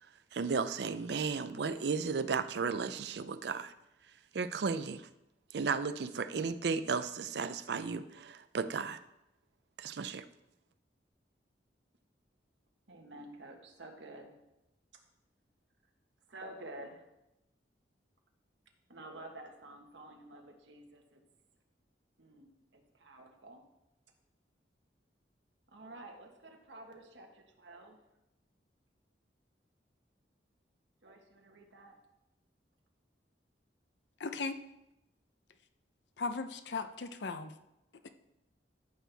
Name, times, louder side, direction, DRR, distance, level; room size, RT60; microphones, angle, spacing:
voice 1, 0.3-3.7 4.3-5.1 5.5-9.0 9.8-10.3, right 5 dB, 65° right, 12 dB, 0.5 m, -34 dB
voice 2, 12.9-14.3 14.9-15.0 16.3-17.1 18.9-21.2 22.2-23.6 25.7-28.0 31.0-32.0, right 1 dB, 85° right, 3 dB, 1.4 m, -50 dB
voice 3, 34.2-34.6 36.2-37.5 38.0-38.1, left 4 dB, 75° left, 10 dB, 0.6 m, -37 dB
13.5 x 6.1 x 3.4 m, 0.90 s
head